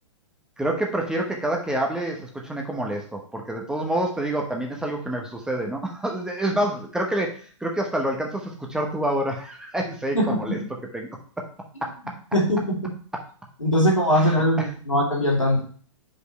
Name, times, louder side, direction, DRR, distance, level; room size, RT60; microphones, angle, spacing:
voice 1, 0.6-7.3 7.6-10.6 10.9-11.1 11.8-11.9 14.2-14.3 14.6-14.7, right 1 dB, 5° right, 1 dB, 1.0 m, -27 dB
voice 2, 12.3-12.9 13.6-15.6, equal, 90° left, -2 dB, 2.5 m, -21 dB
5.2 x 4.9 x 4.5 m, 0.43 s
figure-of-eight pair, 115°, 16 cm